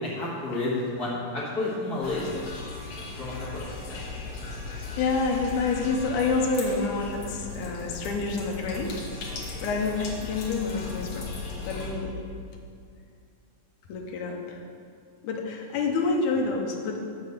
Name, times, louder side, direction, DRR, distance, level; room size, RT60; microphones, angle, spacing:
voice 1, 0.0-2.3 3.2-3.7, left 2 dB, 40° left, -6 dB, 1.5 m, -30 dB
sound 1, 2.0-11.9, left 3 dB, 60° left, 2.0 m, -37 dB
voice 2, 5.0-9.0 9.6-11.3 11.6-12.1 13.9-14.6 15.2-17.0, left 4 dB, 80° left, 1 dB, 2.4 m, -28 dB
7.4 x 5.8 x 6.6 m, 2.3 s
omnidirectional pair, 3.6 m